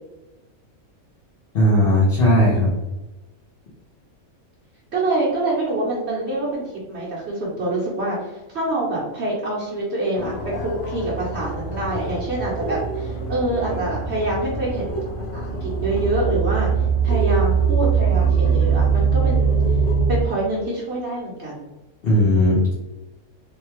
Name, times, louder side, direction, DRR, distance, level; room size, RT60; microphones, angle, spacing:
voice 1, 1.5-2.7 22.0-22.8, left 1 dB, 50° left, -8 dB, 0.9 m, -17 dB
voice 2, 4.9-14.9 15.3-16.7 17.0-19.6 20.1-21.7, right 2 dB, 55° right, -5 dB, 1.0 m, -26 dB
sound 1, 10.2-20.2, right 5 dB, 70° left, 0.5 m, -22 dB
3.4 x 2.3 x 3.0 m, 1.1 s
omnidirectional pair, 1.5 m